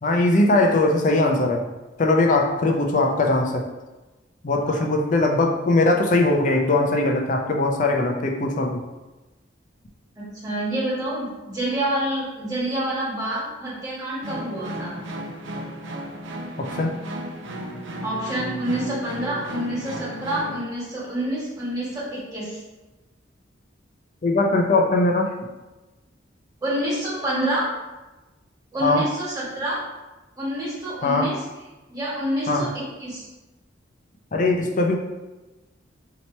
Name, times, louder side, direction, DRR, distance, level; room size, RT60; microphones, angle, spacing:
voice 1, 0.0-1.6 2.0-3.7 4.4-8.8 16.6-16.9 24.2-25.3 28.8-29.1 31.0-31.3 32.5-32.7 34.3-35.0, left 2 dB, 40° left, 2 dB, 0.4 m, -20 dB
voice 2, 10.2-15.0 18.0-22.6 26.6-27.6 28.7-29.8 30.4-31.3 31.9-33.2, right 1 dB, 20° right, -8 dB, 1.5 m, -27 dB
sound 1, 14.2-20.6, right 1 dB, 75° right, 0.5 m, -34 dB
2.9 x 2.8 x 4.3 m, 1.1 s
head